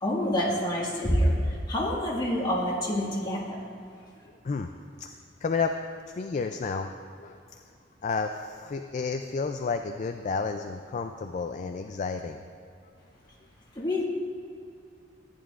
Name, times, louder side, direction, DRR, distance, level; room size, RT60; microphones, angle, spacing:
voice 1, 0.0-3.6 13.8-14.0, equal, 25° left, -4 dB, 1.8 m, -27 dB
voice 2, 5.4-5.8 6.1-7.6 8.0-12.4, left 4 dB, 40° left, 6 dB, 0.3 m, -31 dB
14.5 x 10.0 x 2.5 m, 2.4 s
head